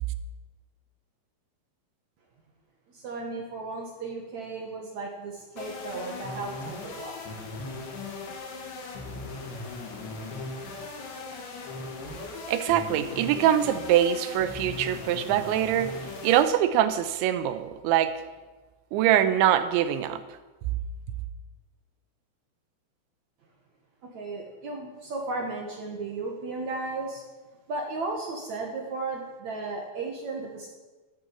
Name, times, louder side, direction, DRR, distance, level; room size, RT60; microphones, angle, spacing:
voice 1, 2.9-7.2 24.1-27.2 27.7-30.7, right 3 dB, 55° right, 0 dB, 2.2 m, -35 dB
sound 1, 5.6-16.4, left 3 dB, 70° left, 4.7 m, -38 dB
voice 2, 12.5-15.9 16.2-18.1 18.9-20.2, right 11 dB, 85° right, 12 dB, 3.1 m, -23 dB
13.0 x 12.0 x 8.4 m, 1.3 s
omnidirectional pair, 5.4 m